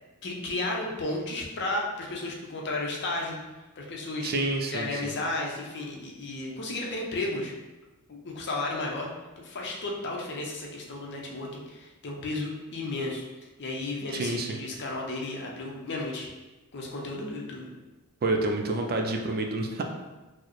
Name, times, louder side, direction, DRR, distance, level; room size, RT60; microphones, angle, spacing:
voice 1, 0.2-3.4 3.8-4.3 4.7-7.5 8.1-9.1 9.4-13.3 13.6-16.3 16.7-17.7, left 2 dB, 50° left, -1 dB, 0.6 m, -33 dB
voice 2, 4.2-5.1 14.1-14.6 18.2-19.8, right 2 dB, 45° right, 3 dB, 0.4 m, -28 dB
4.5 x 2.1 x 3.0 m, 1.1 s
head